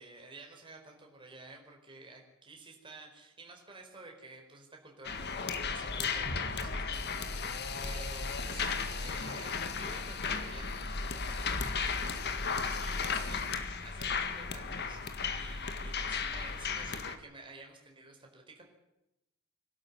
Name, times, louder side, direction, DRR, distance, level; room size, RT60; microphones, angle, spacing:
voice 1, 0.0-18.7, right 3 dB, 25° right, 1 dB, 4.6 m, -52 dB
sound 1, 5.0-17.2, left 5 dB, 50° left, 1.8 m, -35 dB
24.0 x 12.5 x 9.7 m, 0.90 s
head